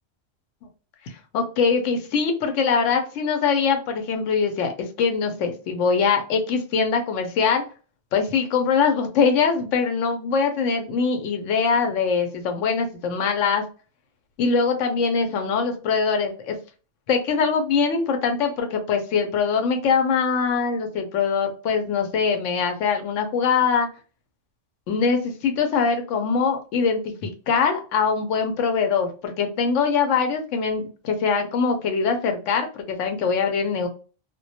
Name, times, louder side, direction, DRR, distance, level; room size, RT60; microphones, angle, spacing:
voice 1, 1.3-7.6 8.1-13.6 14.4-16.6 17.1-23.9 24.9-33.9, left 5 dB, 75° left, 5 dB, 0.9 m, -22 dB
2.2 x 2.2 x 2.6 m, 0.36 s
omnidirectional pair, 1.3 m